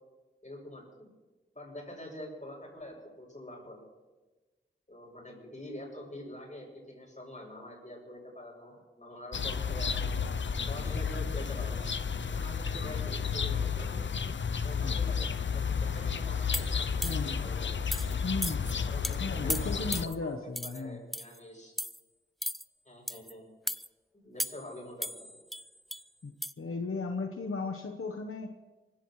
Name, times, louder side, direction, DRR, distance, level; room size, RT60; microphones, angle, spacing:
voice 1, 0.4-1.1 1.5-3.8 4.9-10.2 10.6-11.8 12.3-13.9 14.6-17.8 18.9-21.7 22.9-23.4 24.1-25.3, left 1 dB, 35° left, -1 dB, 7.4 m, -46 dB
sound 1, 9.3-20.1, left 6 dB, 60° left, 0.5 m, -32 dB
sound 2, 16.5-17.4 17.9-18.1 18.4-18.7 19.0-19.2 19.5-20.1 20.6-20.8 21.1-21.4 21.8-22.0 22.4-22.6 23.1-23.3 23.7-23.9 24.4-24.7 25.0-26.0 26.4-26.5, equal, ahead, 0.4 m, -36 dB
voice 2, 17.0-17.4 18.2-18.6 19.2-21.0 26.2-28.5, left 3 dB, 85° left, 4 dB, 1.1 m, -35 dB
26.0 x 16.0 x 3.2 m, 1.2 s
wide cardioid pair, 60°, 21 cm